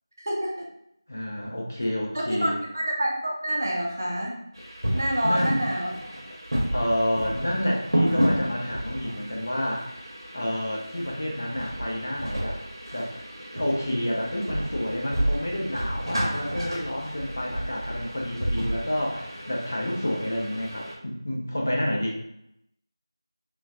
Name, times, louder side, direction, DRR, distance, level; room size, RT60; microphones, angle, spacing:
voice 1, 0.2-0.5 2.3-4.3 4.9-5.9, right 1 dB, 40° right, -2 dB, 0.5 m, -27 dB
voice 2, 1.1-2.5 5.2-5.6 6.7-9.9 10.3-12.6 12.9-13.1 13.5-22.2, equal, 30° left, -2 dB, 0.4 m, -29 dB
sound 1, 4.5-21.0, equal, 75° right, 0.9 m, -31 dB
3.1 x 2.2 x 2.6 m, 0.78 s
figure-of-eight pair, 175°, 2 cm